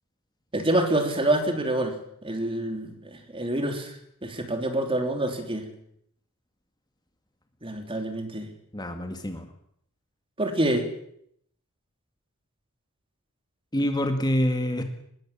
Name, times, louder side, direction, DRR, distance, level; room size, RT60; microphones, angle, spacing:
voice 1, 0.5-2.0 2.2-3.9 4.2-5.7 7.6-8.5 10.4-10.9, right 1 dB, 25° right, 6 dB, 3.5 m, -26 dB
voice 2, 8.7-9.5 13.7-14.8, equal, 20° left, 6 dB, 1.8 m, -26 dB
24.0 x 20.5 x 7.4 m, 0.70 s
head